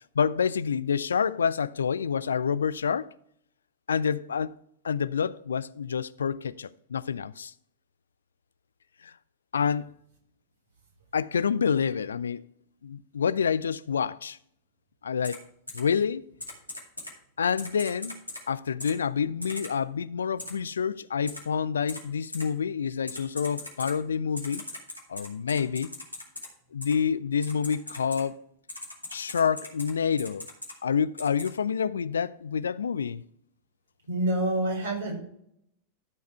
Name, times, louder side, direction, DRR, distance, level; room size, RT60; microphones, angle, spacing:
voice 1, 0.2-3.1 3.9-4.6 4.8-7.5 9.0-9.1 9.5-9.9 11.1-12.4 12.8-14.4 15.0-15.4 15.7-16.2 17.4-18.1 18.5-24.6 25.1-25.9 26.7-28.4 29.1-30.5 30.8-33.2, left 6 dB, 70° left, 0.3 m, -28 dB
Typing, 15.2-15.4 15.7-15.8 16.4-17.1 17.6-18.4 18.8-18.9 19.4-19.7 20.4-20.5 21.3-21.4 21.9-22.0 22.3-22.4 23.1-23.9 24.4-26.5 26.8-26.9 27.4-28.2 28.7-29.9 30.2-30.7 31.2-31.5, left 2 dB, 85° left, 2.3 m, -39 dB
voice 2, 34.1-35.1, right 1 dB, 65° right, 4.3 m, -27 dB
13.5 x 4.8 x 4.6 m
figure-of-eight pair, 90°, 0 cm